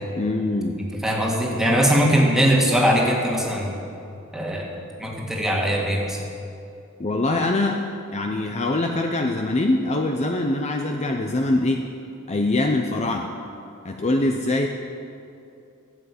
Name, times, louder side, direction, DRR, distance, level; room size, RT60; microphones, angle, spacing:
voice 1, 0.2-0.8 7.0-7.8 8.1-11.8 12.3-13.3 13.8-14.7, left 2 dB, 30° left, 3 dB, 0.7 m, -23 dB
voice 2, 0.8-3.8 4.3-4.7 5.0-6.2, equal, ahead, -2 dB, 2.0 m, -21 dB
14.0 x 8.0 x 8.5 m, 2.6 s
head